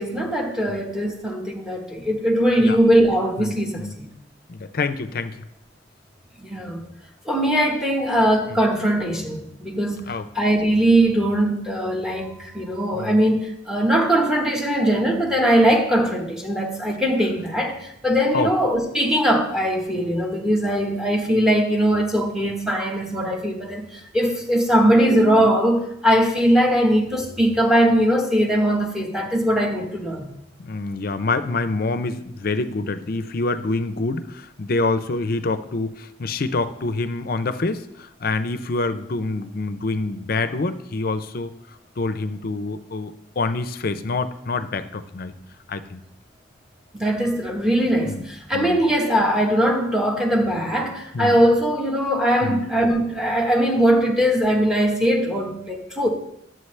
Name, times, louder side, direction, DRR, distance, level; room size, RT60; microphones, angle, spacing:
voice 1, 0.0-4.1 6.4-6.8 7.3-30.3 46.9-56.1, equal, 5° right, 1.2 m, -20 dB
voice 2, 3.4-3.9 4.5-5.3 8.5-8.6 10.1-10.2 12.9-13.1 18.3-18.5 30.6-34.3 34.6-35.9 36.2-37.8 38.2-41.5 42.0-45.3 45.7-46.0 48.0-48.2 48.5-48.8 51.1-51.4 52.4-52.6, left 3 dB, 50° left, 0.5 m, -26 dB
11.0 x 7.8 x 3.3 m
head